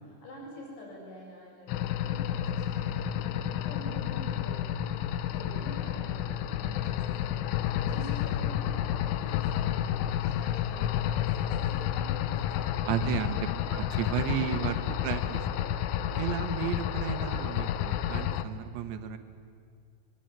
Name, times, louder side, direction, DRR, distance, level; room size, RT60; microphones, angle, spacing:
voice 1, 0.0-4.9 5.3-12.9 13.2-13.5 15.9-16.2, equal, 55° left, -3 dB, 9.4 m, -47 dB
sound 1, 1.7-18.4, left 11 dB, 80° left, 3.1 m, -30 dB
voice 2, 12.9-13.4 13.7-15.6 16.2-19.2, right 8 dB, 70° right, 8 dB, 3.3 m, -33 dB
26.5 x 24.5 x 9.1 m, 2.2 s
omnidirectional pair, 6.0 m